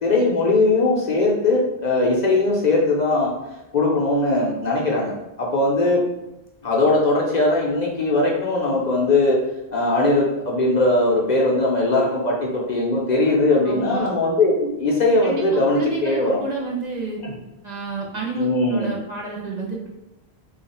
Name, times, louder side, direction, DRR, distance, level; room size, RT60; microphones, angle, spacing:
voice 1, 0.0-3.3 3.7-6.0 6.6-9.4 9.7-16.4 17.2-17.3 18.3-18.9, left 2 dB, 50° left, -3 dB, 0.7 m, -20 dB
voice 2, 13.6-14.1 15.2-17.2 17.6-19.9, right 3 dB, 50° right, -3 dB, 0.6 m, -30 dB
3.2 x 2.4 x 4.1 m, 0.94 s
omnidirectional pair, 1.1 m